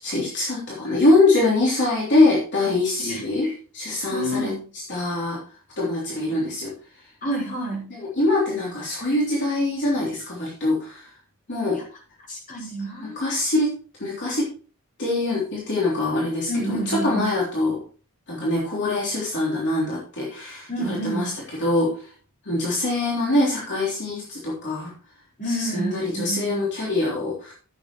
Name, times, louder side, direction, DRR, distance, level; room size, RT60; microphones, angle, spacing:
voice 1, 0.0-4.5 4.9-5.4 5.8-6.7 7.9-11.1 11.5-11.8 12.6-12.7 13.1-14.5 15.0-17.8 18.3-22.1 22.4-24.9 25.4-27.5, left 2 dB, 55° left, -4 dB, 3.3 m, -23 dB
voice 2, 4.1-4.6 7.2-7.9 12.3-13.4 16.5-17.3 20.7-21.3 25.4-26.7, right 1 dB, 40° left, -3 dB, 5.0 m, -29 dB
14.5 x 8.1 x 3.1 m, 0.37 s
head